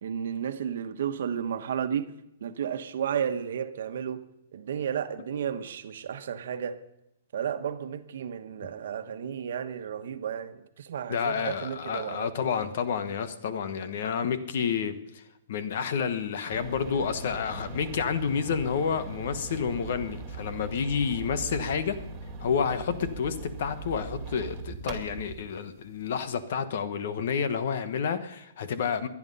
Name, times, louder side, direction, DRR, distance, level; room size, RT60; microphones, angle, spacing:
voice 1, 0.0-2.1 2.4-4.2 4.5-6.8 7.3-12.5, right 8 dB, 65° right, 1.2 m, -33 dB
voice 2, 11.1-15.2 15.5-22.0 22.4-29.1, left 6 dB, 60° left, 1.3 m, -29 dB
sound 1, 16.5-25.4, right 3 dB, 20° right, 2.2 m, -40 dB
22.5 x 9.9 x 5.5 m
hypercardioid pair, 155°, 0 cm